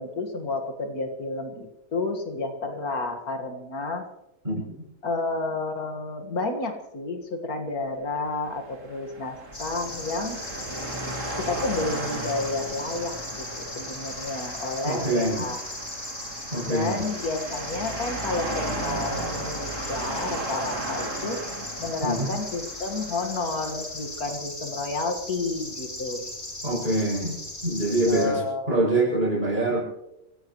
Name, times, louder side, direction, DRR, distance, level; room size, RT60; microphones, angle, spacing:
voice 1, 0.0-4.1 5.0-10.4 11.4-15.6 16.7-21.4 21.8-26.2 28.1-28.7, left 3 dB, 85° left, 4 dB, 2.4 m, -31 dB
sound 1, 8.3-23.7, right 2 dB, 60° right, 2.9 m, -35 dB
sound 2, 9.5-28.3, left 1 dB, 45° left, 4.1 m, -38 dB
voice 2, 14.8-15.4 16.5-17.0 22.0-22.3 26.6-27.4 27.6-28.4 28.7-29.8, right 2 dB, 30° right, -4 dB, 7.7 m, -24 dB
26.5 x 16.5 x 3.2 m, 0.91 s
omnidirectional pair, 1.5 m